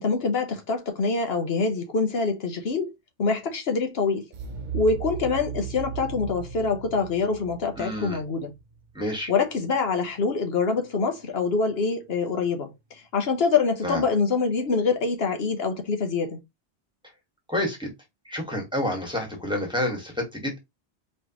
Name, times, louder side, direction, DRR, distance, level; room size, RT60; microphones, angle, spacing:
voice 1, 0.0-2.9 3.2-4.2 4.7-8.5 9.3-16.4, left 4 dB, 70° left, 1.1 m, -25 dB
sound 1, 4.3-9.2, right 7 dB, 50° right, 0.7 m, -36 dB
voice 2, 7.8-8.2 8.9-9.3 13.8-14.0 17.5-17.9 18.2-20.6, left 1 dB, 5° right, 1.5 m, -29 dB
4.3 x 3.2 x 2.9 m
omnidirectional pair, 1.1 m